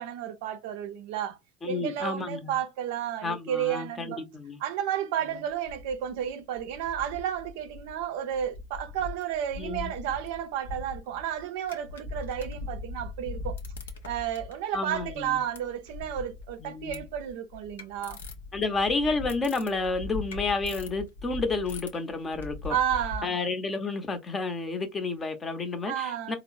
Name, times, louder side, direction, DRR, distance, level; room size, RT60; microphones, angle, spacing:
voice 1, 0.0-1.4 1.7-4.2 4.6-13.6 14.0-18.2 22.7-23.4 25.9-26.4, right 10 dB, 65° right, 0.5 m, -32 dB
voice 2, 1.6-2.5 3.2-4.6 9.6-9.9 14.7-15.4 16.6-17.0 18.5-22.8 23.2-26.4, left 3 dB, 25° left, 0.7 m, -30 dB
sound 1, 5.5-6.3 6.6-8.1 8.3-23.2, left 3 dB, 75° left, 0.5 m, -41 dB
3.6 x 2.0 x 2.4 m
figure-of-eight pair, 75°, 0 cm